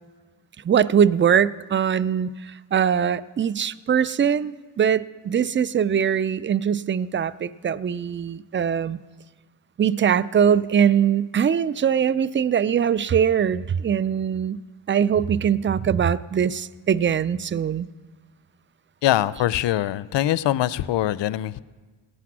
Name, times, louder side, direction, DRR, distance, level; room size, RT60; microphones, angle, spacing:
voice 1, 0.6-9.0 9.8-14.6 14.9-17.9, right 8 dB, 25° right, 20 dB, 0.4 m, -22 dB
voice 2, 19.0-21.6, left 13 dB, 70° left, 18 dB, 0.6 m, -23 dB
17.5 x 8.2 x 6.1 m, 1.4 s
supercardioid pair, 50°, 46 cm